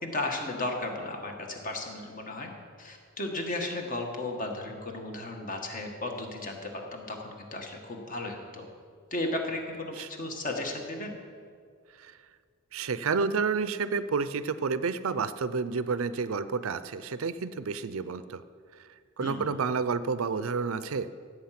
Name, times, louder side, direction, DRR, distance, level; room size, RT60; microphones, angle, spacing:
voice 1, 0.0-2.5 2.8-8.6 9.1-11.1 19.2-19.5, left 2 dB, 40° left, 2 dB, 1.6 m, -35 dB
voice 2, 12.7-18.4 19.2-21.1, right 5 dB, 75° right, 14 dB, 0.5 m, -30 dB
16.0 x 8.1 x 5.9 m, 2.1 s
head